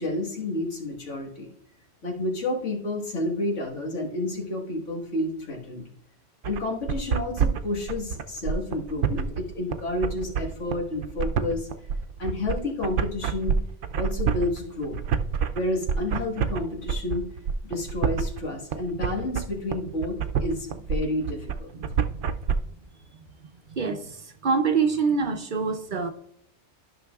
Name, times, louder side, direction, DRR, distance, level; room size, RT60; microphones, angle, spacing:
voice 1, 0.0-1.5 2.0-5.8 6.4-11.7 12.2-13.5 13.9-15.0 15.5-17.3 17.6-21.7, left 2 dB, 90° left, 1.9 m, -30 dB
sound 1, 6.4-22.5, right 7 dB, 80° right, 0.9 m, -27 dB
voice 2, 23.7-26.1, right 5 dB, 55° right, 0.7 m, -25 dB
12.5 x 5.9 x 2.3 m
omnidirectional pair, 1.2 m